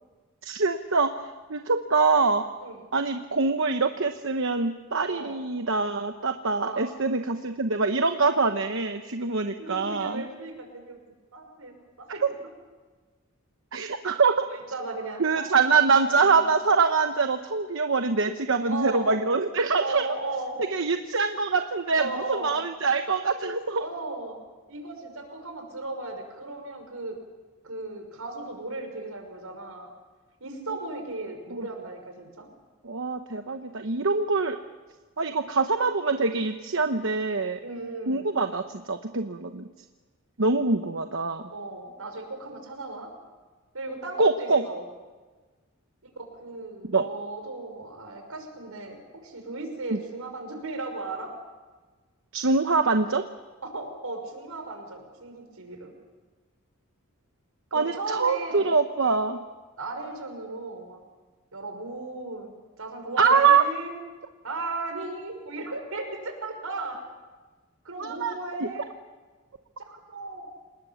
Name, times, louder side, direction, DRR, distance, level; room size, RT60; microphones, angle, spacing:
voice 1, 0.4-2.4 2.9-10.2 12.2-12.3 13.7-14.4 15.2-20.0 20.7-23.8 31.5-31.6 32.8-34.6 35.2-37.6 38.1-39.7 40.4-41.4 44.2-44.6 46.9-47.0 49.9-50.0 52.3-53.2 57.7-59.4 63.2-63.6 68.0-68.3 68.6-68.7, right 4 dB, 60° right, 7 dB, 1.0 m, -24 dB
voice 2, 5.1-5.4 6.6-6.8 9.6-12.2 14.5-16.5 18.6-19.1 19.8-20.7 21.9-22.6 23.7-24.4 24.7-27.2 27.6-29.9 30.4-32.5 37.6-38.3 41.5-43.1 43.7-44.8 46.2-51.3 53.6-55.9 57.7-58.7 59.8-61.0 61.5-63.9 64.4-67.0 67.8-69.0 69.9-70.5, right 2 dB, 80° right, 4 dB, 5.7 m, -36 dB
28.5 x 19.5 x 7.2 m, 1.3 s
head